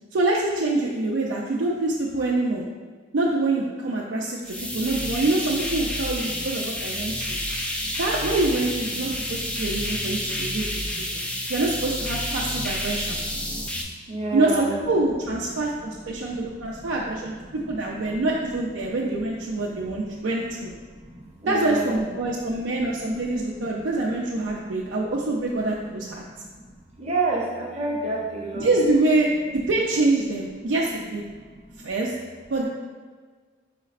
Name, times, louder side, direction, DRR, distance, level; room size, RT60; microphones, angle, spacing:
voice 1, 0.1-2.6 3.1-7.4 8.0-10.8 11.5-13.2 14.3-20.7 21.5-26.2 28.5-31.2 31.8-32.1 32.5-32.7, right 2 dB, 70° right, -3 dB, 0.4 m, -25 dB
sound 1, 4.4-13.8, left 1 dB, 5° left, 0.3 m, -29 dB
voice 2, 12.9-14.9 15.5-15.6 15.9-18.3 18.9-19.2 19.6-20.5 20.9-22.0 23.6-23.8 24.6-24.8 26.3-28.7 31.4-31.9, right 2 dB, 35° right, -3 dB, 0.8 m, -32 dB
5.0 x 4.1 x 2.4 m, 1.5 s
head